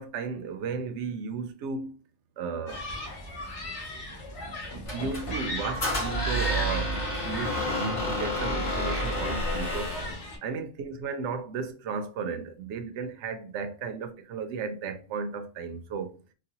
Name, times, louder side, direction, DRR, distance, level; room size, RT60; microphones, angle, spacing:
voice 1, 0.0-2.0 2.4-2.8 4.9-10.0 10.4-16.1, right 5 dB, 80° right, 0.9 m, -34 dB
Human group actions, 2.7-10.4, left 1 dB, 85° left, 1.3 m, -37 dB
Squeak, 4.9-10.1, equal, 50° left, 1.9 m, -30 dB
4.0 x 2.2 x 2.8 m
omnidirectional pair, 1.2 m